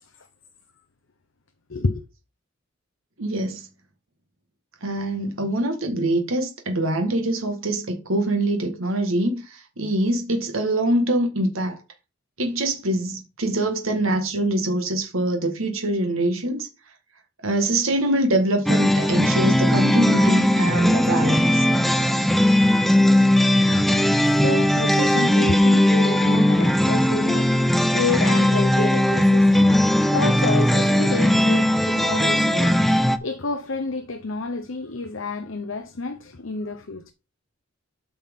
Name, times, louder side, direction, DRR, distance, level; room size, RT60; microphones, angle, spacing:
voice 1, 1.7-2.0 24.1-37.1, left 3 dB, 70° left, 0.8 m, -29 dB
voice 2, 3.2-3.7 4.8-11.8 12.4-16.7 17.4-21.6 22.1-22.2, right 1 dB, 80° right, 1.7 m, -24 dB
sound 1, 18.7-33.2, left 1 dB, ahead, 0.6 m, -18 dB
8.9 x 5.8 x 3.7 m
head